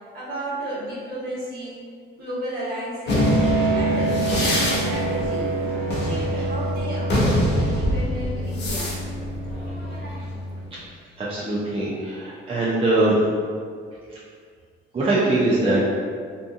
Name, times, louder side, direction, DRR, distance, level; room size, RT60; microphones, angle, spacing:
voice 1, 0.1-1.8 2.2-3.4 3.7-5.5 6.0-9.0, right 1 dB, 50° right, -9 dB, 1.2 m, -33 dB
sound 1, 3.1-10.6, equal, 60° left, 0.7 m, -23 dB
voice 2, 11.2-13.2 14.9-15.8, right 2 dB, 30° right, -9 dB, 0.5 m, -22 dB
2.7 x 2.4 x 2.5 m, 2.1 s
cardioid pair, 90°, 20 cm